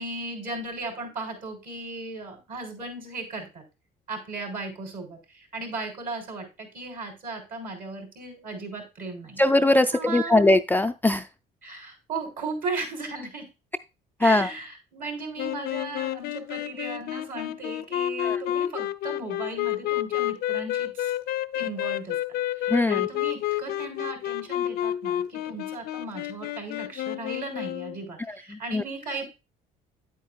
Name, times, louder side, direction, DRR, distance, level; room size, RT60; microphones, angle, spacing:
voice 1, 0.0-3.6 4.1-9.4 9.9-10.4 11.6-13.5 14.2-21.1 21.5-22.2 22.6-29.2, right 3 dB, 55° right, 3 dB, 3.6 m, -36 dB
voice 2, 9.4-11.3 14.2-14.5 18.2-18.4 22.7-23.1 28.3-28.8, left 2 dB, 10° left, 8 dB, 0.3 m, -21 dB
sound 1, 15.4-28.0, left 13 dB, 70° left, 0.5 m, -30 dB
9.3 x 8.4 x 2.3 m, 0.27 s
cardioid pair, 110°, 17 cm